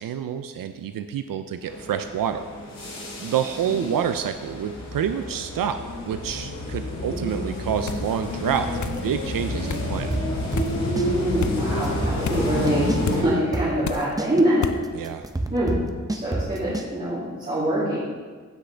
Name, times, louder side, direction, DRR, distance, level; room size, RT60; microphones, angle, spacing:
voice 1, 0.0-2.4 3.2-10.1 14.9-15.3, right 8 dB, 85° right, 8 dB, 0.5 m, -28 dB
sound 1, 1.6-13.2, left 1 dB, 90° left, 3.0 m, -29 dB
voice 2, 3.6-3.9 6.9-7.3 10.9-14.7 15.5-15.7 16.1-18.0, right 1 dB, 25° right, -11 dB, 2.5 m, -25 dB
sound 2, 7.9-8.1 8.8-9.0 9.7-9.9 10.6-10.8 11.4-11.6 12.2-12.5 13.0-13.2 13.8-14.1 14.6-14.8, left 8 dB, 60° left, 0.5 m, -31 dB
sound 3, 10.1-11.1 11.4-11.5 11.8-13.2 13.5-16.9, right 2 dB, 10° right, 0.6 m, -28 dB
15.5 x 6.2 x 3.4 m, 1.5 s
wide cardioid pair, 160°, 32 cm